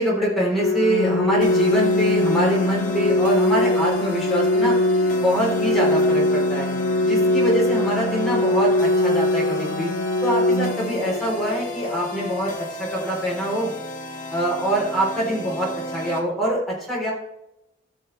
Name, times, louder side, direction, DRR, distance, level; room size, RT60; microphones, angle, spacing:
voice 1, 0.0-4.8 5.2-6.7 7.0-9.9 10.2-12.5 12.8-13.7 14.3-17.1, right 1 dB, ahead, -6 dB, 3.6 m, -24 dB
Organ, 0.6-11.6, left 1 dB, 55° left, 0.7 m, -21 dB
sound 1, 1.4-16.2, left 1 dB, 40° left, 1.3 m, -33 dB
15.5 x 6.3 x 3.3 m, 0.87 s
head